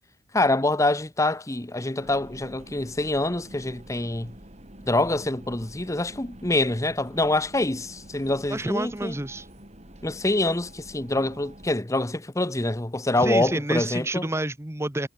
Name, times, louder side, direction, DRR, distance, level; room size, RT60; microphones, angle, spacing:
voice 1, 0.3-4.3 4.9-9.1 10.0-14.2, left 2 dB, 15° left, 0.9 m, -25 dB
sound 1, 2.0-11.8, right 1 dB, 35° right, 6.5 m, -47 dB
voice 2, 8.5-9.5 13.2-15.1, right 1 dB, 15° right, 1.2 m, -29 dB
head